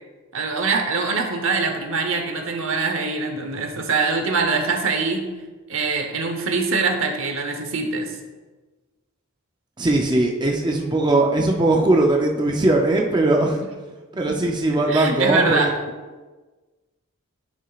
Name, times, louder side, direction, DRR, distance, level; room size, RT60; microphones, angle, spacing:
voice 1, 0.3-5.3 5.7-8.1 13.6-13.7 14.3-14.4 14.9-15.7, right 4 dB, 65° right, 4 dB, 0.9 m, -23 dB
voice 2, 9.8-13.6 14.2-15.7, right 2 dB, 20° right, 0 dB, 0.5 m, -19 dB
11.0 x 6.1 x 2.4 m, 1.3 s
head